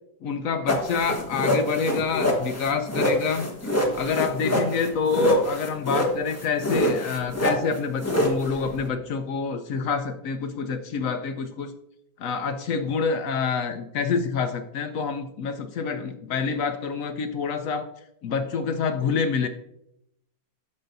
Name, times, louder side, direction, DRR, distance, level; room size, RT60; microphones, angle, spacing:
voice 1, 0.2-3.5 3.9-11.7 12.2-17.9 18.2-19.5, left 5 dB, 75° left, 7 dB, 0.7 m, -27 dB
sound 1, 0.7-8.9, left 1 dB, 10° left, 0.9 m, -26 dB
11.0 x 6.6 x 2.6 m, 0.81 s
omnidirectional pair, 2.0 m